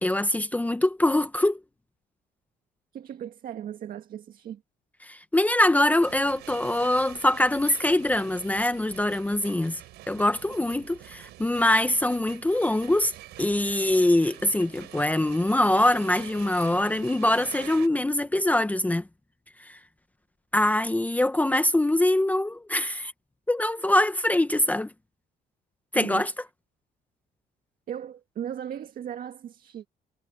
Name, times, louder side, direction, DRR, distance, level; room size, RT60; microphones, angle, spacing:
voice 1, 0.0-1.6 5.0-9.8 10.1-13.1 13.4-19.0 19.6-19.8 20.5-23.1 23.5-24.9 25.9-26.3, left 1 dB, 10° left, 1.0 m, -23 dB
voice 2, 2.9-4.6 25.9-26.3 27.9-29.9, right 9 dB, 55° right, 1.9 m, -37 dB
sound 1, 6.0-17.9, right 16 dB, 80° right, 6.3 m, -46 dB
cardioid pair, 110°, 17 cm